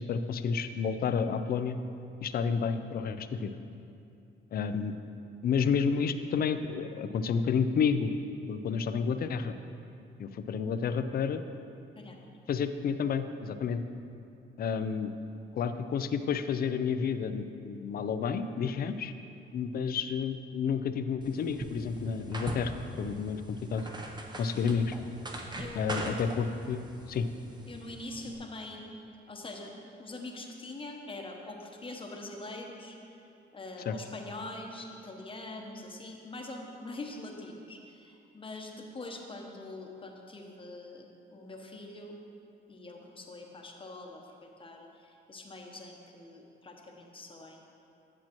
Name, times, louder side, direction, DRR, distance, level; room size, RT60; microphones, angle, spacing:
voice 1, 0.0-1.8 2.2-3.6 4.5-5.0 5.4-8.1 8.5-9.5 10.2-11.4 12.5-13.9 14.6-15.1 15.5-19.1 19.5-23.9 24.4-24.9 25.8-27.3 33.9-34.0, left 6 dB, 50° left, 10 dB, 0.4 m, -30 dB
sound 1, 21.2-28.4, right 1 dB, 20° right, 0.8 m, -42 dB
voice 2, 25.6-26.1 27.7-28.8 29.3-29.7 30.0-33.0 33.5-42.1 42.7-47.7, left 2 dB, 25° left, 1 dB, 1.0 m, -44 dB
9.7 x 7.3 x 3.0 m, 2.7 s
cardioid pair, 90°, 20 cm